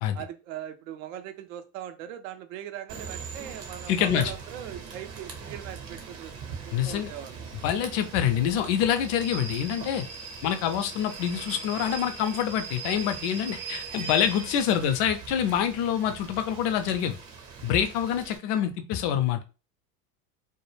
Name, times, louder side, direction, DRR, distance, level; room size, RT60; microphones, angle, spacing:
voice 1, 0.1-6.3 6.6-7.4, right 11 dB, 60° right, 9 dB, 0.6 m, -40 dB
Rain / Train, 2.9-18.4, right 5 dB, 35° right, 0.8 m, -40 dB
voice 2, 3.9-4.3 6.7-7.1 7.6-10.0 10.4-17.2 17.6-19.4, left 9 dB, 40° left, 8 dB, 0.5 m, -26 dB
2.1 x 2.1 x 3.1 m, 0.31 s
hypercardioid pair, 100°, 47 cm